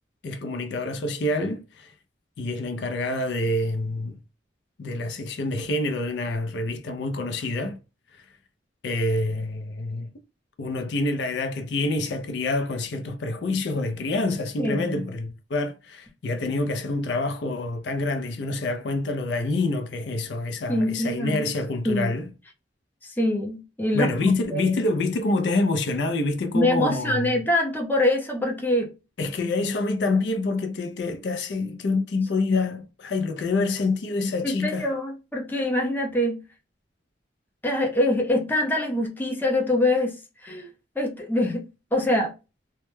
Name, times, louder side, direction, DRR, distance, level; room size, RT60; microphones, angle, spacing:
voice 1, 0.2-1.9 2.4-4.2 4.8-7.8 8.2-8.3 8.8-10.1 10.6-22.3 23.9-27.4 29.2-34.9, left 2 dB, 70° left, 0.4 m, -27 dB
voice 2, 14.6-15.0 20.7-21.5 21.8-22.1 23.0-24.6 26.5-28.9 34.4-36.4 37.6-40.1 40.4-40.7 41.0-41.6 41.9-42.3, left 1 dB, 10° left, 0.5 m, -24 dB
2.1 x 2.1 x 3.0 m
head